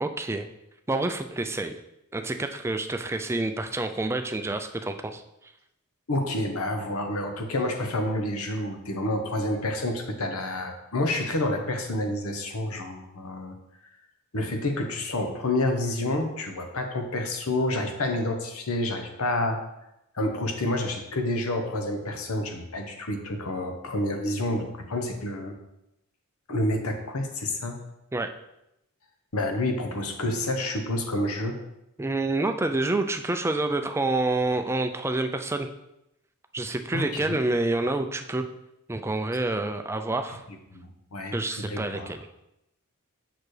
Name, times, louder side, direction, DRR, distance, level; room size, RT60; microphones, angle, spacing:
voice 1, 0.0-0.5 0.9-1.8 2.1-5.2 28.1-28.3 32.0-35.7 36.5-38.5 38.9-40.4 41.3-42.3, right 2 dB, 10° right, 6 dB, 0.4 m, -28 dB
voice 2, 6.1-13.6 14.3-19.6 20.1-25.6 26.5-27.8 29.3-31.6 36.9-37.4 40.5-42.1, left 1 dB, 80° left, 4 dB, 1.0 m, -29 dB
6.7 x 6.0 x 3.2 m, 0.87 s
head